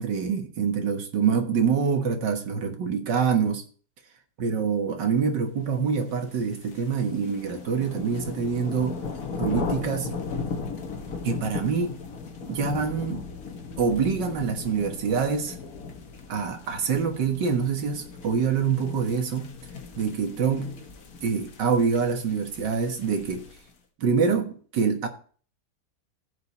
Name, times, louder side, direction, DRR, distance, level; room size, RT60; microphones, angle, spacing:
voice 1, 0.0-3.6 4.4-9.0 9.4-10.2 11.2-12.0 12.5-13.3 13.8-15.6 16.3-19.5 20.0-20.8 21.2-23.4 24.0-25.1, right 6 dB, 90° right, 2.1 m, -25 dB
sound 1, 6.2-23.7, left 4 dB, 60° left, 1.9 m, -37 dB
15.0 x 5.2 x 4.2 m
omnidirectional pair, 1.8 m